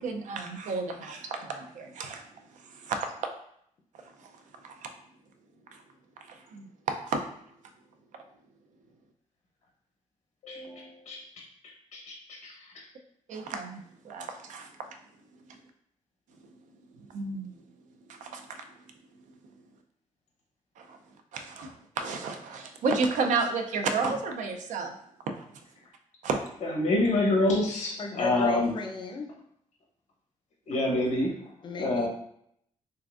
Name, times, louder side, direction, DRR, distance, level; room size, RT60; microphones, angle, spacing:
voice 1, 0.0-2.2 2.7-3.1 4.2-4.3 4.6-4.7 6.3-7.2 13.3-14.7 17.1-17.6 18.2-18.6 20.8-21.0 21.3-24.9 26.2-26.4, right 4 dB, 75° right, 5 dB, 0.5 m, -32 dB
voice 2, 10.4-11.2 12.1-12.2 12.4-12.5 26.6-28.7 30.7-31.5 31.8-32.1, left 2 dB, 85° left, -3 dB, 1.0 m, -26 dB
voice 3, 28.0-29.3 31.6-32.1, left 3 dB, 40° left, 3 dB, 0.5 m, -35 dB
3.7 x 3.3 x 2.4 m, 0.69 s
wide cardioid pair, 155°, 13 cm